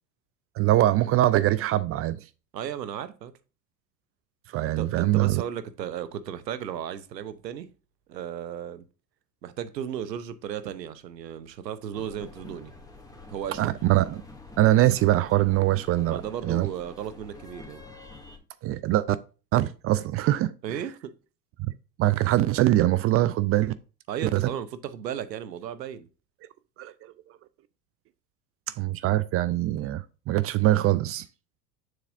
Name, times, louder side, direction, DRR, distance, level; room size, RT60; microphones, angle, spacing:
voice 1, 0.6-2.2 4.5-5.4 13.6-14.2 14.6-16.7 18.6-19.2 19.5-20.8 22.0-23.7 24.2-24.5 26.8-26.9 28.8-31.2, right 15 dB, 30° right, 0.4 m, -23 dB
voice 2, 2.5-3.3 4.8-7.7 8.1-8.8 9.4-12.7 13.3-13.8 16.0-17.8 20.6-21.1 24.1-26.1, right 9 dB, 85° right, 0.9 m, -35 dB
sound 1, 11.9-18.4, left 3 dB, 5° left, 2.3 m, -47 dB
6.9 x 6.7 x 2.6 m
hypercardioid pair, 75°, 49 cm